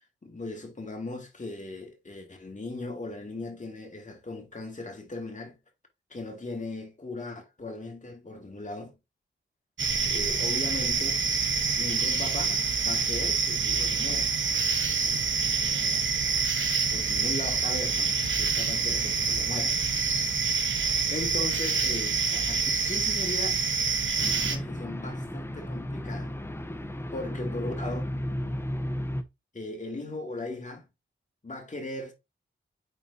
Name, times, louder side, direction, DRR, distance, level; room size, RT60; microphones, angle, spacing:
voice 1, 0.2-5.6 6.1-8.9 10.1-11.3 11.8-12.6 12.8-14.3 15.0-16.0 16.9-19.8 20.6-23.6 24.4-26.3 27.1-28.1 29.5-30.8 31.4-32.1, left 2 dB, 35° left, 2.4 m, -38 dB
sound 1, 9.8-24.6, right 5 dB, 65° right, 1.1 m, -27 dB
sound 2, 24.2-29.2, left 1 dB, 10° left, 0.8 m, -34 dB
9.0 x 4.0 x 2.8 m
cardioid pair, 70°, 21 cm